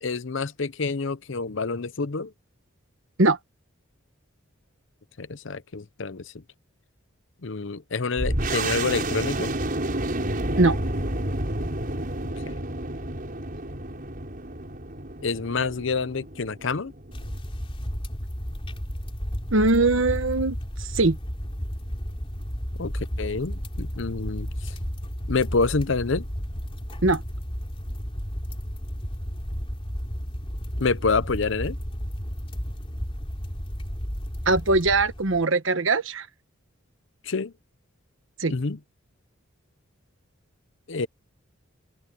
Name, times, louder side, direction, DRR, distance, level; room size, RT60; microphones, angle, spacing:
voice 1, 0.0-2.3 5.2-6.3 7.4-9.5 12.5-12.6 15.2-16.9 22.8-24.7 25.3-26.3 30.8-31.8 37.2-37.5 38.5-38.8 40.9-41.1, left 4 dB, 60° left, 0.7 m, -27 dB
sound 1, 8.2-17.4, right 1 dB, 45° right, 5.6 m, -30 dB
sound 2, 17.1-35.4, equal, 25° left, 3.5 m, -33 dB
voice 2, 19.5-21.2 27.0-27.2 34.4-36.3 38.4-38.5, right 2 dB, 65° right, 1.3 m, -21 dB
head